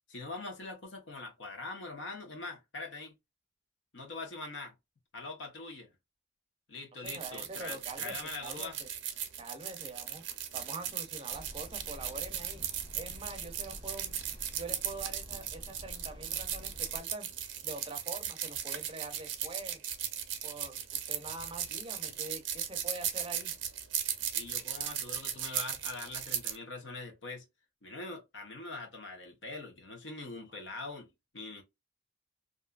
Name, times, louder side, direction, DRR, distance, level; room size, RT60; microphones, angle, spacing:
voice 1, 0.1-3.1 3.9-4.7 5.1-5.9 6.7-8.8 24.3-27.4 27.8-31.6, left 3 dB, 80° left, 1.0 m, -43 dB
voice 2, 7.0-8.9 9.4-12.6 12.9-14.2 14.5-19.8 20.4-23.6, right 2 dB, 30° right, 0.5 m, -45 dB
sound 1, 7.0-26.6, right 9 dB, 90° right, 0.6 m, -37 dB
sound 2, 11.3-17.0, equal, 25° left, 0.6 m, -49 dB
2.6 x 2.4 x 2.2 m
head